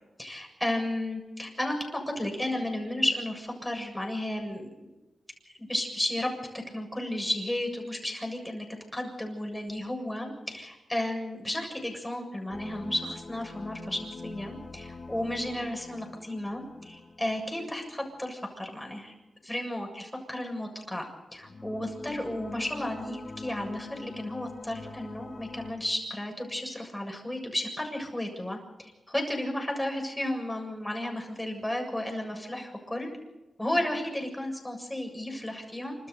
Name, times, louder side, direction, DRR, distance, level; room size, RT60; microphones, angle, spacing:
voice 1, 0.2-4.9 5.4-6.3 6.7-8.6 8.9-19.1 19.4-33.1 33.6-36.0, left 1 dB, 10° left, 2 dB, 7.3 m, -33 dB
sound 1, 12.5-18.5 21.3-25.7, left 3 dB, 50° left, 3.2 m, -44 dB
28.5 x 13.5 x 8.2 m, 1.1 s
cardioid pair, 70°, 0 cm